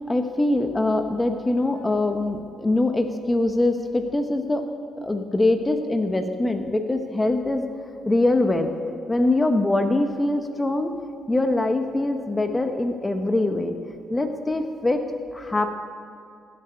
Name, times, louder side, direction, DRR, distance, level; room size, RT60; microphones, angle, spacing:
voice 1, 0.1-4.7 5.0-7.7 8.0-8.7 9.1-11.0 11.3-13.8 14.1-15.1 15.3-15.8, left 2 dB, 15° left, 6 dB, 1.0 m, -23 dB
18.0 x 7.7 x 9.4 m, 2.5 s
cardioid pair, 95°, 0 cm